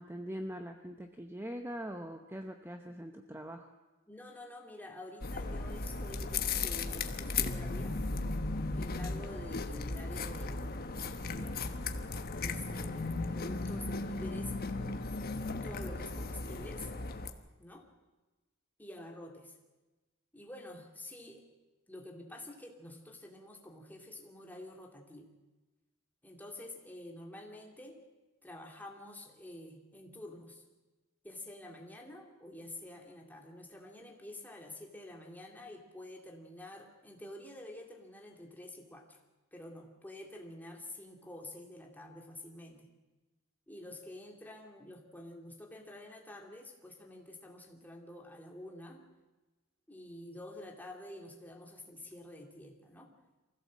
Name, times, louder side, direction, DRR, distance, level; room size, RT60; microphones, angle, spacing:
voice 1, 0.0-3.7, equal, 10° right, 5 dB, 0.9 m, -42 dB
voice 2, 4.1-8.0 8.7-10.8 11.3-11.6 12.4-14.5 15.6-16.9 17.6-17.9 18.8-19.5 20.3-21.5 21.9-25.3 26.2-28.0 28.4-30.6 31.2-39.2 39.5-42.9 43.7-49.0 49.9-53.1, left 1 dB, 10° left, 1 dB, 2.6 m, -48 dB
sound 1, 5.2-17.3, left 3 dB, 45° left, 1.2 m, -36 dB
24.0 x 16.0 x 7.6 m, 1.2 s
head